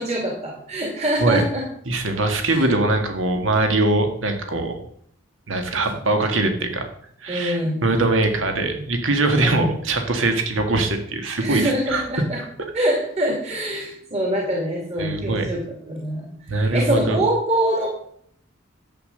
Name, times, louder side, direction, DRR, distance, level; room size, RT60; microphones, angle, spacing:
voice 1, 0.0-1.6 2.5-2.7 7.3-7.8 9.4-9.7 11.4-12.4 12.7-17.9, right 1 dB, 35° right, -1 dB, 2.5 m, -24 dB
voice 2, 1.9-4.7 5.5-6.8 7.2-12.0 15.0-15.4 16.5-17.2, right 2 dB, 75° right, 5 dB, 1.8 m, -22 dB
11.0 x 8.5 x 6.6 m, 0.67 s
head